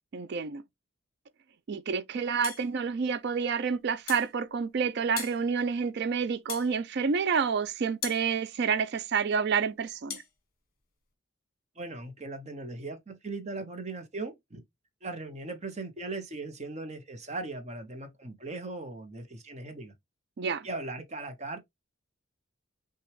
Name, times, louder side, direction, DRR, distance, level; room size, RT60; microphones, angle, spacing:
voice 1, 0.1-0.6 1.7-10.2 20.4-20.7, right 6 dB, 50° right, 0.4 m, -29 dB
sound 1, 2.4-2.7 4.1-4.3 5.2-5.4 6.5-6.7 8.0-8.2 10.1-10.3, left 8 dB, 45° left, 1.3 m, -37 dB
voice 2, 11.8-14.6 15.0-19.9 20.6-21.6, right 3 dB, 30° right, 0.8 m, -38 dB
5.9 x 2.3 x 3.1 m
head